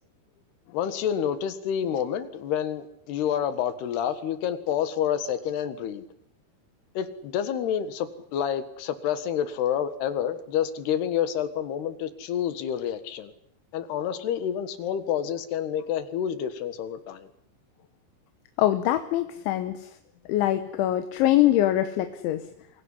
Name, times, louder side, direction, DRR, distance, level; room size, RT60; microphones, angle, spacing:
voice 1, 0.7-6.0 7.0-13.3 13.7-17.3, left 9 dB, 65° left, 11 dB, 3.5 m, -28 dB
voice 2, 18.6-20.0 20.3-22.4, left 13 dB, 85° left, 8 dB, 3.5 m, -23 dB
25.0 x 17.0 x 10.0 m, 0.75 s
omnidirectional pair, 5.2 m